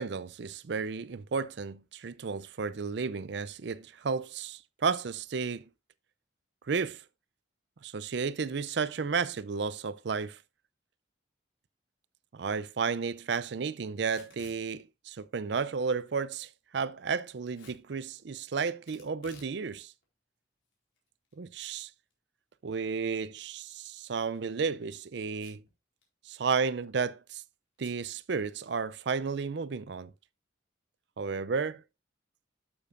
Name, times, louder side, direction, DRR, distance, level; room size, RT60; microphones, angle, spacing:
voice 1, 0.0-5.6 6.7-7.0 7.8-10.4 12.3-19.9 21.4-21.9 22.6-25.6 26.3-27.4 27.8-30.1 31.2-31.8, right 5 dB, 60° right, 0.5 m, -33 dB
Packing tape duct tape / Tearing, 14.0-14.6 17.5-17.8 18.9-19.6 19.9-20.0 20.7-21.3 21.6-21.7 22.1-22.2 24.2-24.4 25.3-25.7 26.0-26.1 26.4-26.7 27.8-28.0, left 4 dB, 75° left, 4.2 m, -55 dB
12.0 x 7.0 x 2.5 m
head